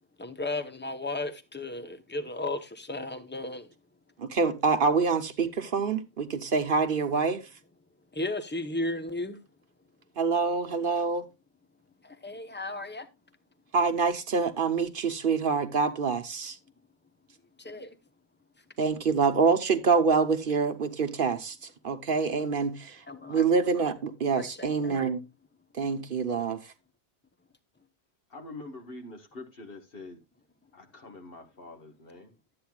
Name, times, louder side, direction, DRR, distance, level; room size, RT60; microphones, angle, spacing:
voice 1, 0.2-3.7 8.1-9.4 12.0-13.1 17.6-18.0 23.1-23.4 24.4-25.0, left 2 dB, 10° left, 0.9 m, -35 dB
voice 2, 4.2-7.5 10.2-11.3 13.7-16.6 18.8-23.0 23.3-25.2 25.7-26.7, right 5 dB, 55° right, 1.0 m, -26 dB
voice 3, 28.3-30.2 30.7-32.3, left 2 dB, 60° left, 1.7 m, -45 dB
12.5 x 8.6 x 2.3 m
omnidirectional pair, 1.1 m